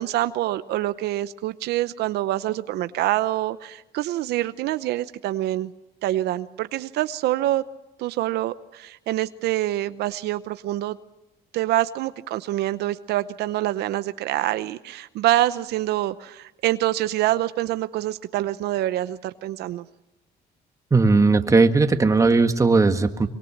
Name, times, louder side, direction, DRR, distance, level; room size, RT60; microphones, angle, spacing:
voice 1, 0.0-5.7 6.0-7.6 8.0-11.0 11.5-19.8, right 14 dB, 80° right, 13 dB, 0.8 m, -26 dB
voice 2, 20.9-23.3, right 3 dB, 20° right, 7 dB, 1.7 m, -18 dB
24.5 x 23.5 x 7.3 m, 1.0 s
cardioid pair, 110°, 17 cm